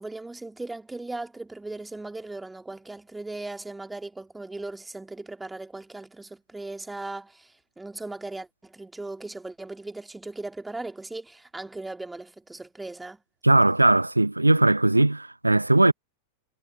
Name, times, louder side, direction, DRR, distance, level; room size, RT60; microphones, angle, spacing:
voice 1, 0.0-13.2, right 2 dB, 5° right, 2.0 m, -38 dB
voice 2, 13.4-15.9, right 2 dB, 85° right, 0.3 m, -19 dB
figure-of-eight pair, 90°, 0 cm